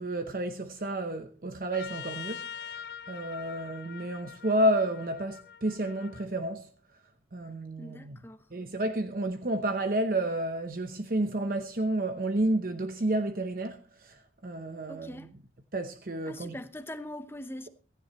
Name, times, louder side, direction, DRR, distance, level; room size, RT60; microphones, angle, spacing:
voice 1, 0.0-6.7 7.3-8.2 8.5-15.3 15.7-16.6, right 1 dB, 50° right, 0.9 m, -31 dB
Trumpet, 1.7-6.3, left 8 dB, 65° left, 0.6 m, -44 dB
voice 2, 7.8-8.5 14.9-15.3 16.3-17.7, left 1 dB, 15° left, 0.8 m, -42 dB
16.5 x 14.5 x 3.1 m
head